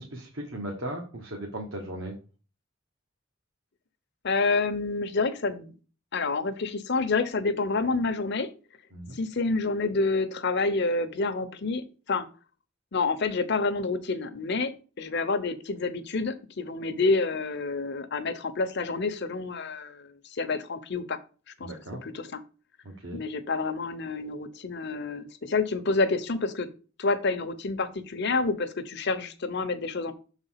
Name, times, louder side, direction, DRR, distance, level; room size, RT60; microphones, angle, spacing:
voice 1, 0.0-2.2 8.9-9.2 21.6-22.0 22.8-23.2, right 1 dB, 65° right, 1 dB, 1.2 m, -37 dB
voice 2, 4.2-5.7 6.1-8.5 9.1-12.2 12.9-21.2 21.6-21.7 22.0-22.4 23.1-26.7 27.0-30.1, left 3 dB, 55° left, 11 dB, 0.8 m, -28 dB
6.3 x 4.1 x 5.7 m, 0.37 s
head